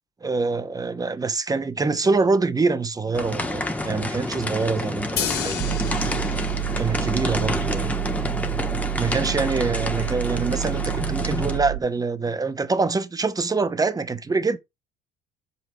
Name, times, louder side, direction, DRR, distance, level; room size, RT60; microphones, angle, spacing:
voice 1, 0.2-5.9 6.8-8.2 9.0-14.6, right 4 dB, 20° right, 0.9 m, -25 dB
sound 1, 3.1-11.6, left 1 dB, 5° left, 1.2 m, -29 dB
sound 2, 5.2-11.2, left 8 dB, 55° left, 1.6 m, -35 dB
sound 3, 5.6-11.8, right 21 dB, 55° right, 0.6 m, -29 dB
7.0 x 5.4 x 3.2 m
supercardioid pair, 90°, 19 cm